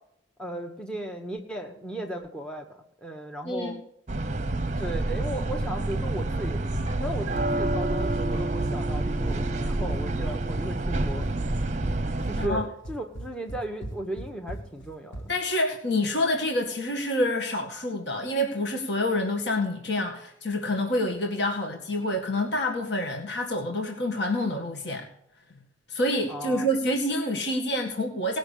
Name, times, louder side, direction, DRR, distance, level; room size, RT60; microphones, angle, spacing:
voice 1, 0.4-2.7 3.0-3.8 4.8-6.7 7.0-11.2 12.2-15.3 26.3-26.7, right 1 dB, 5° left, 2 dB, 1.1 m, -36 dB
voice 2, 3.4-3.8 12.4-12.6 15.3-25.1 25.9-28.4, left 1 dB, 60° left, 1 dB, 1.9 m, -27 dB
sound 1, 4.1-12.5, right 2 dB, 40° right, 0.8 m, -28 dB
Run, 5.9-15.3, right 1 dB, 80° left, 2.3 m, -37 dB
18.5 x 6.3 x 8.4 m, 0.79 s
head